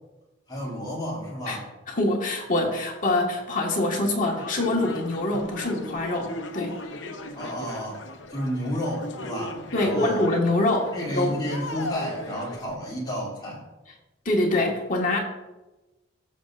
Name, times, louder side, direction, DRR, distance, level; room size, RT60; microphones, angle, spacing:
voice 1, 0.5-1.6 7.3-8.0 8.3-10.2 10.9-13.6, equal, 20° left, -4 dB, 2.8 m, -31 dB
voice 2, 1.9-6.8 9.7-11.4 14.2-15.2, left 2 dB, 40° left, -1 dB, 1.6 m, -25 dB
sound 1, 4.3-12.8, left 1 dB, 65° left, 0.9 m, -38 dB
15.5 x 6.8 x 2.5 m, 1.1 s
head